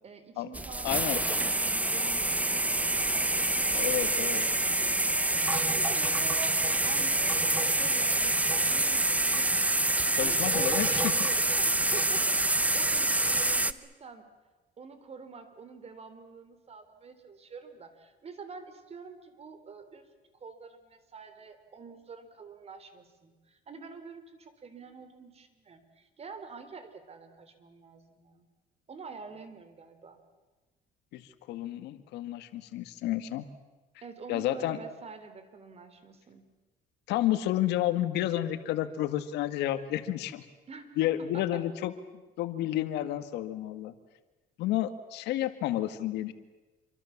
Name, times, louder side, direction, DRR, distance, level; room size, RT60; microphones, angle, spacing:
voice 1, 0.0-3.3 3.7-9.5 10.1-14.3 14.8-20.1 20.4-28.5 28.9-30.2 34.0-36.4 40.7-41.6, right 5 dB, 40° right, 10 dB, 3.7 m, -47 dB
sound 1, 0.5-13.7, right 2 dB, 10° right, 1.0 m, -27 dB
voice 2, 0.8-1.2 3.7-4.5 10.1-11.1 31.1-31.2 31.5-33.5 34.3-34.8 37.1-40.5 41.0-41.9 42.4-43.9 44.6-46.3, left 13 dB, 85° left, 10 dB, 1.8 m, -30 dB
27.0 x 24.0 x 7.3 m, 1.2 s
cardioid pair, 110°, 17 cm